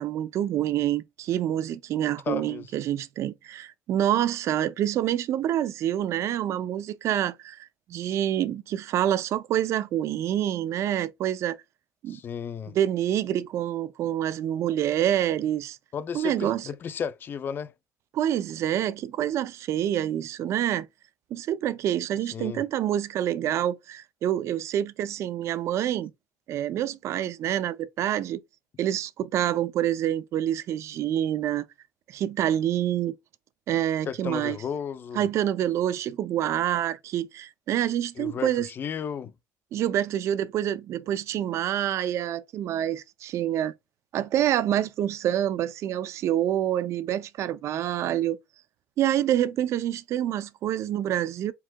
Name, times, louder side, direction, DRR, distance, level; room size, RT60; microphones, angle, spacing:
voice 1, 0.0-11.6 12.0-12.2 12.7-15.8 16.1-16.7 18.1-20.9 21.3-26.1 26.5-28.4 28.8-31.6 32.1-33.2 33.7-34.6 35.2-38.7 39.7-43.7 44.1-48.4 49.0-51.5, right 11 dB, 55° right, 0.4 m, -27 dB
voice 2, 2.3-2.7 12.1-12.8 15.9-17.7 22.3-22.6 34.1-35.2 38.2-39.3, left 7 dB, 40° left, 0.4 m, -33 dB
4.6 x 3.5 x 2.2 m
cardioid pair, 135°, 6 cm